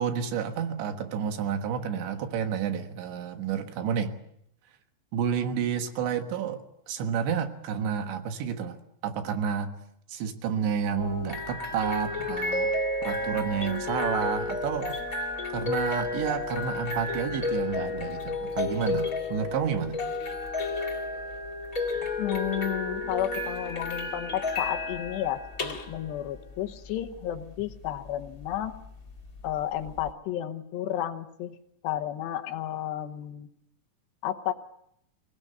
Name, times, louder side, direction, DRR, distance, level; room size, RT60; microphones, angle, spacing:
voice 1, 0.0-4.1 5.1-9.7 10.1-12.7 13.1-15.0 15.5-20.0, right 7 dB, 75° right, 8 dB, 3.7 m, -30 dB
sound 1, 11.0-30.1, left 2 dB, 40° left, 1.2 m, -32 dB
voice 2, 22.2-28.7 29.4-31.6 31.8-33.5 34.2-34.5, left 11 dB, 75° left, 7 dB, 3.0 m, -32 dB
23.0 x 18.0 x 8.8 m, 0.75 s
omnidirectional pair, 5.3 m